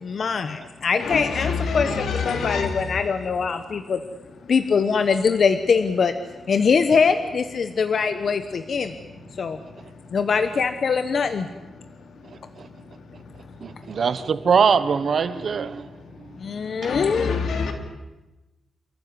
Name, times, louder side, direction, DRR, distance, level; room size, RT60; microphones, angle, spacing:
voice 1, 0.0-4.0 4.5-6.1 6.5-8.9 9.4-9.6 10.1-11.5 16.4-17.7, left 5 dB, 50° left, 1.1 m, -23 dB
voice 2, 1.0-2.8 16.8-17.7, left 5 dB, 80° left, 3.4 m, -26 dB
voice 3, 13.6-15.9 16.8-16.9, right 6 dB, 50° right, 1.1 m, -22 dB
28.5 x 14.5 x 9.8 m
wide cardioid pair, 155°, 0 cm